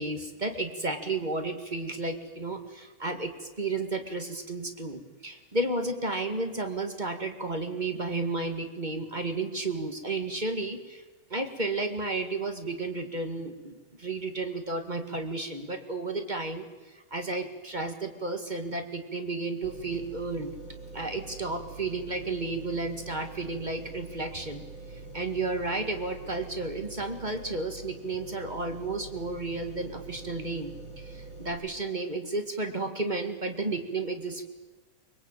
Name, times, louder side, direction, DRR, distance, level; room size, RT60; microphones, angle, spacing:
voice 1, 0.0-11.0 11.3-16.7 16.9-20.5 20.9-24.6 25.1-34.4, right 2 dB, 20° right, 5 dB, 1.5 m, -32 dB
sound 1, 19.6-31.5, right 3 dB, 35° right, 8.9 m, -44 dB
23.5 x 22.5 x 9.0 m, 1.2 s
omnidirectional pair, 3.7 m